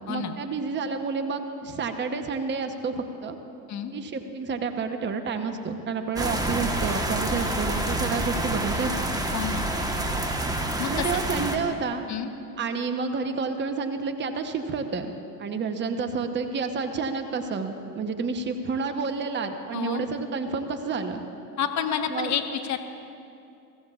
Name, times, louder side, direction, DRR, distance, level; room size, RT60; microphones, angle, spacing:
voice 1, 0.1-3.4 3.9-8.9 10.9-12.1 12.6-15.1 15.4-21.2 22.1-22.3, right 4 dB, 25° right, 6 dB, 1.0 m, -30 dB
sound 1, 6.2-11.6, right 1 dB, 10° right, 1.3 m, -28 dB
voice 2, 9.3-9.7 10.8-11.5 12.1-12.3 19.7-20.1 21.6-22.4 22.7-22.8, left 8 dB, 35° left, 6 dB, 1.2 m, -29 dB
22.5 x 15.0 x 2.5 m, 2.6 s
hypercardioid pair, 85°, 47 cm